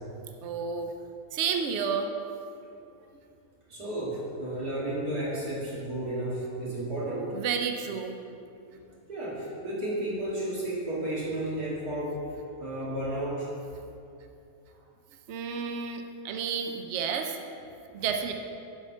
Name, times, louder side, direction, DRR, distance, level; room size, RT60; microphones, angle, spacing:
voice 1, 0.4-0.9 1.3-2.1 7.3-8.4 15.3-17.4 17.9-18.3, right 6 dB, 60° right, 4 dB, 0.8 m, -31 dB
voice 2, 3.7-7.3 9.1-12.2 12.6-13.5 17.9-18.0, right 1 dB, 90° right, -8 dB, 2.8 m, -32 dB
7.2 x 5.8 x 5.5 m, 2.6 s
omnidirectional pair, 1.6 m